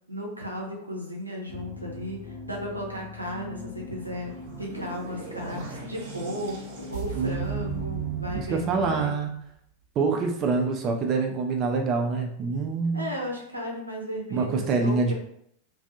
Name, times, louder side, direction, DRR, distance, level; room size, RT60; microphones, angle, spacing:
voice 1, 0.1-4.3 4.6-9.2 12.9-15.1, equal, 90° right, -2 dB, 0.6 m, -35 dB
sound 1, 1.5-9.1, left 3 dB, 50° left, 0.4 m, -42 dB
sound 2, 4.1-9.4, right 5 dB, 55° right, 0.8 m, -38 dB
voice 2, 7.1-9.3 10.0-13.1 14.3-15.1, right 4 dB, 35° right, 3 dB, 0.3 m, -26 dB
2.4 x 2.3 x 2.6 m, 0.70 s
figure-of-eight pair, 90°, 0 cm